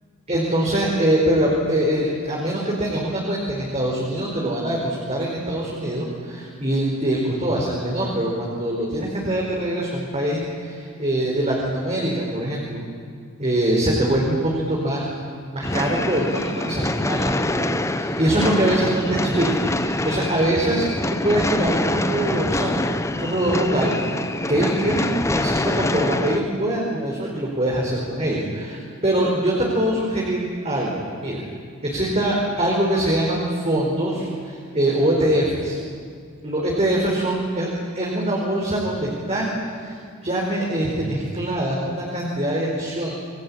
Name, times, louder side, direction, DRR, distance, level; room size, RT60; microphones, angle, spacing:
voice 1, 0.3-12.8 13.4-15.1 15.5-20.9 21.2-22.9 23.2-31.4 31.8-35.8 36.4-37.7 37.9-39.5 39.8-39.9 40.2-43.1, right 1 dB, 30° right, -3 dB, 4.6 m, -23 dB
sound 1, 15.6-26.4, left 1 dB, 15° left, 0.8 m, -25 dB
28.0 x 22.5 x 8.8 m, 2.2 s
head